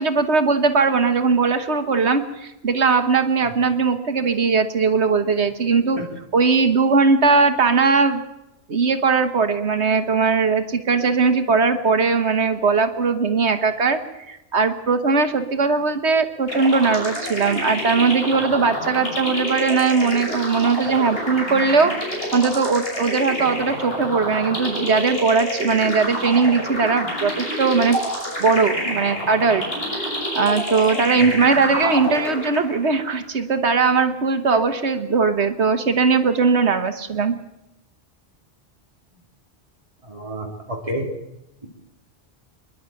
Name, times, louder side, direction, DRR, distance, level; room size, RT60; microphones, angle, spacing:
voice 1, 0.0-6.0 6.3-8.2 8.7-14.0 14.3-21.9 22.3-28.0 28.4-29.6 29.9-30.1 30.3-37.3, right 4 dB, 90° right, 8 dB, 1.7 m, -19 dB
sound 1, 16.5-32.9, equal, 60° left, 6.4 m, -28 dB
voice 2, 40.0-41.1, right 1 dB, 30° right, -2 dB, 3.4 m, -29 dB
26.5 x 11.0 x 9.1 m, 0.89 s
omnidirectional pair, 1.1 m